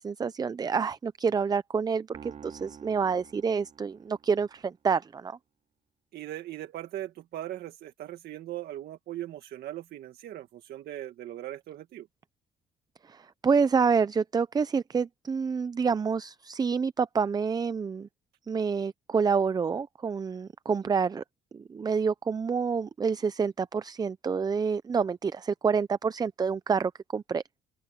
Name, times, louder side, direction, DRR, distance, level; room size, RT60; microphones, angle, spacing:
voice 1, 0.0-5.4 13.0-18.1 18.5-21.2 21.5-27.4, right 5 dB, 25° right, 0.5 m, -28 dB
sound 1, 2.1-4.5, right 7 dB, 45° right, 2.5 m, -49 dB
voice 2, 6.1-12.1, right 13 dB, 65° right, 1.8 m, -39 dB
open air
cardioid pair, 110°, 17 cm